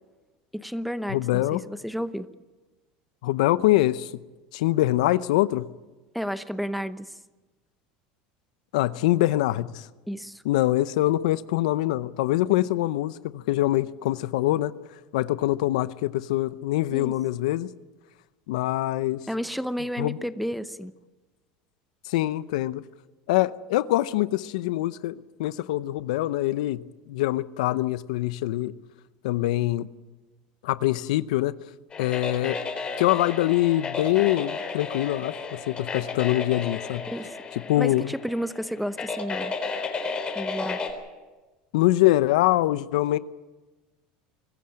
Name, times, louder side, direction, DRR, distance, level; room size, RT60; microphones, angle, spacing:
voice 1, 0.5-2.3 6.1-7.2 10.1-10.4 16.9-17.1 19.3-20.9 37.1-37.4 37.7-39.6 40.3-40.8, equal, ahead, 0.8 m, -32 dB
voice 2, 1.1-1.6 3.2-4.1 4.5-5.7 8.7-9.9 10.4-14.7 15.1-17.7 18.5-19.2 20.0-20.2 22.1-22.8 23.3-25.1 25.4-26.8 27.1-28.7 29.2-29.9 30.6-31.5 32.0-32.6 33.0-37.1 37.7-38.1 41.7-43.2, left 16 dB, 80° left, 0.7 m, -24 dB
sound 1, 31.9-40.9, left 4 dB, 25° left, 4.1 m, -33 dB
24.0 x 14.5 x 8.9 m
supercardioid pair, 120°, 4 cm